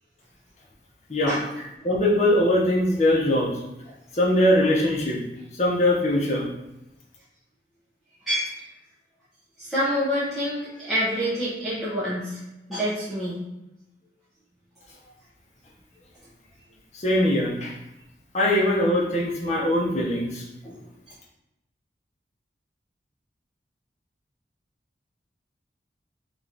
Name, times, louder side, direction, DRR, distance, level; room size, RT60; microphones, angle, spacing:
voice 1, 1.8-3.5 4.1-5.2 5.6-6.5 16.9-17.7 18.3-20.4, left 1 dB, 40° left, -4 dB, 0.8 m, -21 dB
voice 2, 8.3-8.6 9.6-12.4 12.7-13.4 20.6-20.8, equal, ahead, -13 dB, 0.8 m, -27 dB
3.1 x 3.0 x 3.9 m, 0.91 s
head